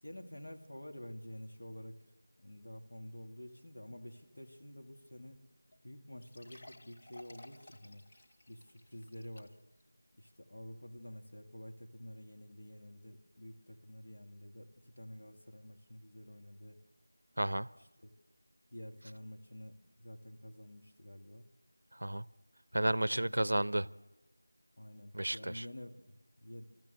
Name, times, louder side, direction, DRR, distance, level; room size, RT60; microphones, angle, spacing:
voice 1, 0.0-2.0 2.4-5.4 5.8-8.1 8.5-9.6 10.2-16.8 17.8-18.1 18.7-21.5 23.1-23.3 24.8-26.6, equal, 55° left, 3 dB, 2.3 m, -49 dB
sound 1, 5.3-5.4 5.7-5.8 6.2-9.8 10.3-10.4 11.0-11.1, left 1 dB, 20° left, 0.8 m, -57 dB
voice 2, 17.4-17.7 22.0-22.3 22.7-23.9 25.1-25.6, right 1 dB, 70° right, 20 dB, 0.6 m, -32 dB
26.5 x 14.0 x 8.0 m, 1.1 s
figure-of-eight pair, 175°, 0 cm